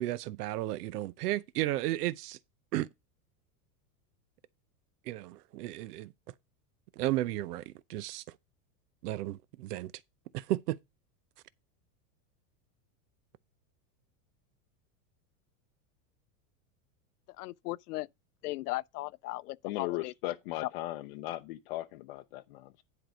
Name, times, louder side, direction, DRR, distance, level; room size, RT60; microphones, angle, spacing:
voice 1, 0.0-2.4 2.7-2.9 5.1-6.1 7.0-8.2 9.0-9.9 10.3-10.8, right 15 dB, 85° right, 0.7 m, -33 dB
voice 2, 17.4-18.1 18.4-20.1 20.6-20.7, left 19 dB, 85° left, 0.6 m, -37 dB
voice 3, 19.6-22.8, left 17 dB, 40° left, 0.5 m, -37 dB
10.5 x 4.7 x 5.2 m
supercardioid pair, 170°, 46 cm